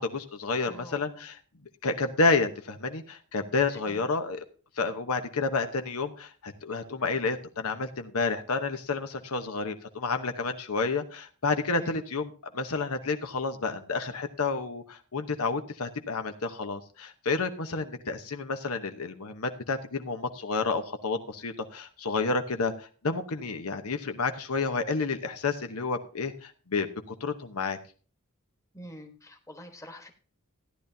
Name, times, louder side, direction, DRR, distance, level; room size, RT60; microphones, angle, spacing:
voice 1, 0.0-1.4 1.8-4.4 4.8-27.8, left 3 dB, 85° left, 6 dB, 1.0 m, -30 dB
voice 2, 0.6-1.3 3.9-4.0 11.8-12.1 28.7-30.1, equal, 15° left, 4 dB, 1.3 m, -45 dB
14.5 x 10.5 x 2.7 m, 0.39 s
head